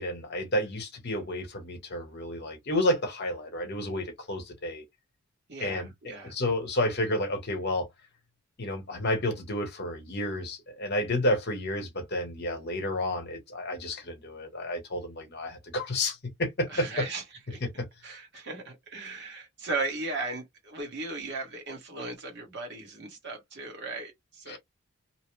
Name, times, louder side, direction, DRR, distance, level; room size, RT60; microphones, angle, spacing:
voice 1, 0.0-4.8 5.6-7.9 8.6-17.0 17.6-17.9 24.5-24.6, left 1 dB, 50° left, 1.0 m, -31 dB
voice 2, 5.5-6.3 16.7-17.6 18.0-24.6, right 3 dB, 50° right, 1.1 m, -37 dB
2.8 x 2.0 x 3.1 m
head